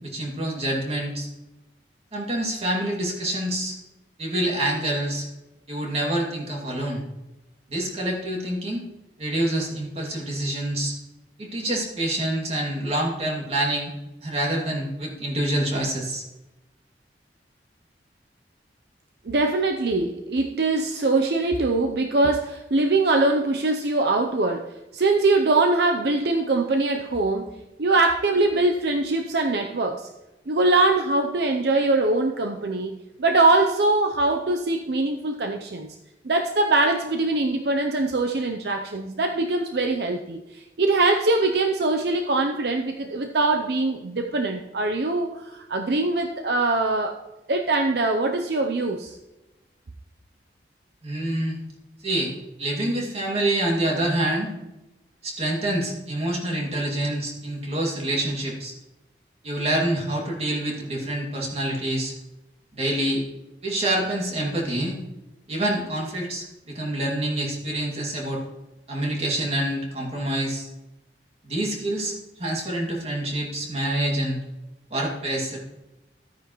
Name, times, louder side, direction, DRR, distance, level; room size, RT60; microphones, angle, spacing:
voice 1, 0.0-1.3 2.1-3.7 4.2-5.3 5.7-7.0 7.7-8.8 9.2-10.9 11.4-13.9 14.2-16.2 51.0-51.6 52.0-52.3 52.6-54.5 55.2-58.8 59.4-62.1 62.7-63.2 63.6-65.0 65.5-68.4 68.9-70.7 71.4-72.1 72.4-74.4 74.9-75.6, right 1 dB, 35° right, -1 dB, 2.3 m, -26 dB
voice 2, 19.2-27.5 27.8-30.1 30.5-36.0 36.2-47.2 47.5-49.2, right 2 dB, 65° right, 4 dB, 0.6 m, -22 dB
14.0 x 9.3 x 3.1 m, 1.0 s
head